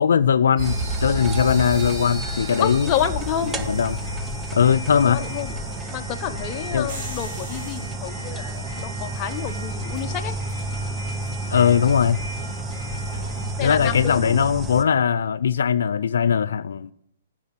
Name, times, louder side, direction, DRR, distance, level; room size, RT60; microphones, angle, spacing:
voice 1, 0.0-2.9 3.7-4.0 4.5-5.2 6.7-6.9 11.5-12.2 13.6-16.9, left 7 dB, 80° left, 14 dB, 0.3 m, -20 dB
sound 1, 0.6-14.8, right 2 dB, 10° right, 0.6 m, -32 dB
sound 2, 0.6-14.5, right 1 dB, 40° right, 3.6 m, -33 dB
voice 2, 2.6-3.5 5.0-5.5 5.9-10.3 13.6-14.4, left 10 dB, 30° left, 6 dB, 0.8 m, -29 dB
10.0 x 6.1 x 7.3 m, 0.77 s
hypercardioid pair, 150°, 0 cm